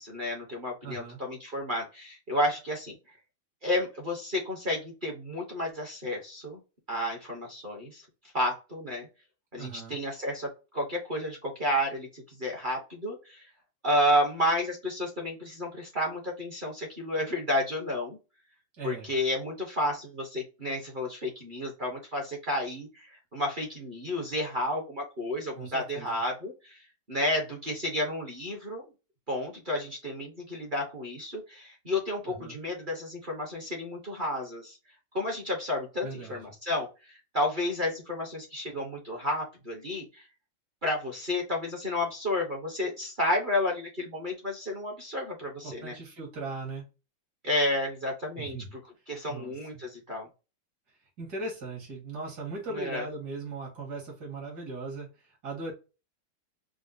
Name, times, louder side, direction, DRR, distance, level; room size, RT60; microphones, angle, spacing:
voice 1, 0.0-2.9 3.6-6.6 6.9-8.0 8.3-9.1 9.5-13.4 13.8-18.2 18.8-26.8 27.1-28.8 29.3-34.8 35.1-36.9 37.3-40.2 40.8-46.0 47.4-48.8 49.1-50.3 52.7-53.0, left 1 dB, 35° right, 0 dB, 0.9 m, -31 dB
voice 2, 0.8-1.2 9.6-10.0 18.8-19.1 25.6-26.2 32.3-32.6 36.0-36.4 45.6-46.8 48.4-48.7 49.3-49.8 51.2-55.7, right 3 dB, 55° right, -2 dB, 2.3 m, -39 dB
5.0 x 2.1 x 2.5 m, 0.30 s
omnidirectional pair, 2.1 m